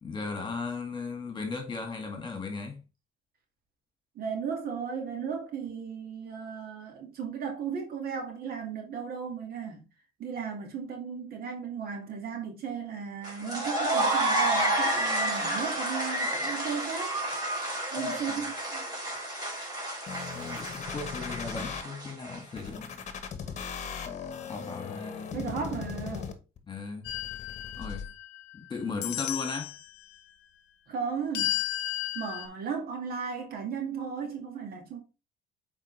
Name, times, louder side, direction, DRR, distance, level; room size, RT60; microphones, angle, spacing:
voice 1, 0.0-2.8 18.0-18.5 20.3-23.0 24.5-25.5 26.7-27.1 27.8-28.1 28.5-29.8, left 4 dB, 25° left, 1.9 m, -37 dB
voice 2, 4.2-9.8 10.2-17.2 17.9-18.8 25.3-26.3 30.9-31.6 32.1-35.0, right 6 dB, 60° right, 2.1 m, -35 dB
sound 1, 13.2-22.6, right 1 dB, 20° right, 3.9 m, -30 dB
sound 2, 20.1-21.8 22.6-26.6 27.1-28.0, left 6 dB, 45° left, 1.1 m, -38 dB
sound 3, 27.0-28.5 29.0-29.9 31.3-32.5, left 15 dB, 85° left, 0.7 m, -33 dB
7.4 x 4.4 x 3.2 m
cardioid pair, 110°, 17 cm